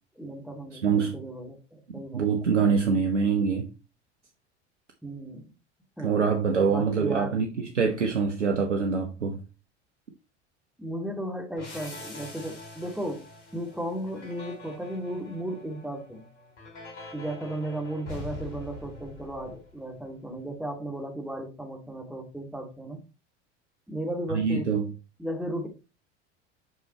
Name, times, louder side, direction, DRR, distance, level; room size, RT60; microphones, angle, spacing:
voice 1, 0.2-2.2 5.0-5.5 6.0-6.2 6.7-7.4 10.8-16.3 17.1-23.0 23.9-24.7 25.2-25.7, right 1 dB, ahead, 2.6 m, -35 dB
voice 2, 0.8-1.2 1.9-3.7 6.0-9.4 24.3-24.9, right 5 dB, 90° right, 1.0 m, -25 dB
sound 1, 11.6-20.0, left 3 dB, 80° left, 4.0 m, -44 dB
7.7 x 5.6 x 3.1 m
hypercardioid pair, 75°, 35 cm